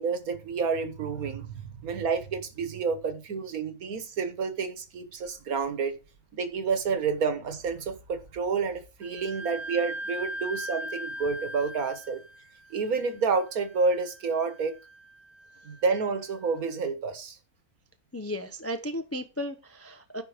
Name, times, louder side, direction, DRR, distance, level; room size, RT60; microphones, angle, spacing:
voice 1, 0.0-1.5 1.8-5.9 6.3-12.2 12.7-14.7 15.7-17.4, right 5 dB, 65° right, 1.7 m, -29 dB
Wind instrument woodwind instrument, 9.0-16.4, equal, 40° right, 1.0 m, -40 dB
voice 2, 18.1-20.2, equal, 20° left, 0.4 m, -35 dB
9.9 x 5.7 x 4.9 m
omnidirectional pair, 1.6 m